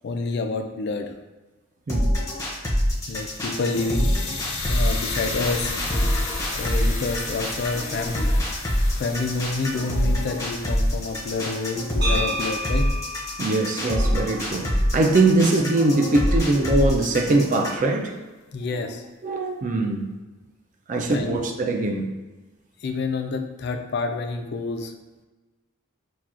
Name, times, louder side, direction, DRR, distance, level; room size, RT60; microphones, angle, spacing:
voice 1, 0.0-1.1 3.1-4.1 4.7-6.1 6.5-8.3 9.0-12.9 18.5-19.0 21.1-21.4 22.8-24.9, left 3 dB, 50° left, 0.3 m, -28 dB
sound 1, 1.9-17.9, equal, 15° left, 0.6 m, -25 dB
sound 2, 2.9-13.0, left 3 dB, 75° left, 0.8 m, -34 dB
sound 3, 12.0-16.1, equal, 55° right, 1.0 m, -33 dB
voice 2, 13.4-18.2 18.6-18.9 19.2-20.0 20.9-22.1, right 2 dB, 40° right, 0.4 m, -22 dB
5.7 x 2.3 x 2.4 m
head